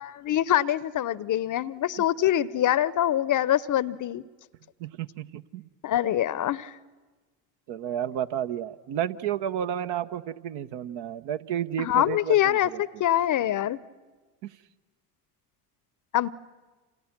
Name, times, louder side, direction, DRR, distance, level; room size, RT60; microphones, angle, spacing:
voice 1, 0.0-4.2 5.8-6.7 11.8-13.8 16.1-16.3, left 12 dB, 40° left, 19 dB, 0.7 m, -24 dB
voice 2, 4.8-5.7 7.7-12.8 14.4-14.5, right 10 dB, 60° right, 11 dB, 1.0 m, -31 dB
29.0 x 27.0 x 6.0 m, 1.3 s
hypercardioid pair, 70°, 47 cm